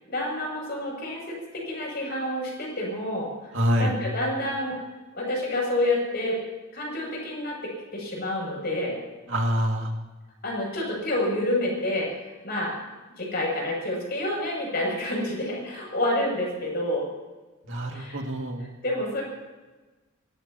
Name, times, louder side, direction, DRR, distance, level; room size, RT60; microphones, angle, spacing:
voice 1, 0.1-3.3 3.8-4.8 5.1-6.4 6.7-9.0 10.4-12.2 12.4-12.7 13.2-17.1 17.9-18.2 18.8-19.2, left 1 dB, 50° left, -2 dB, 7.6 m, -28 dB
voice 2, 3.5-4.0 9.3-9.9 17.6-18.6, equal, 65° right, 2 dB, 2.3 m, -26 dB
25.0 x 19.0 x 3.0 m, 1.2 s
head